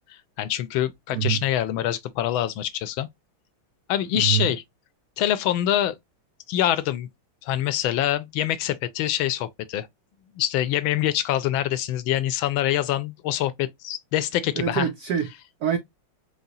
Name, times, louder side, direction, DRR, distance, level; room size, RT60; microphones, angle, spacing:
voice 1, 0.1-3.1 3.9-4.6 5.2-6.0 6.5-7.1 7.4-9.9 10.4-14.9, left 12 dB, 80° left, 1.4 m, -25 dB
voice 2, 4.1-4.5 14.6-15.3 15.6-15.8, right 9 dB, 85° right, 0.8 m, -24 dB
4.8 x 2.0 x 4.0 m
omnidirectional pair, 2.3 m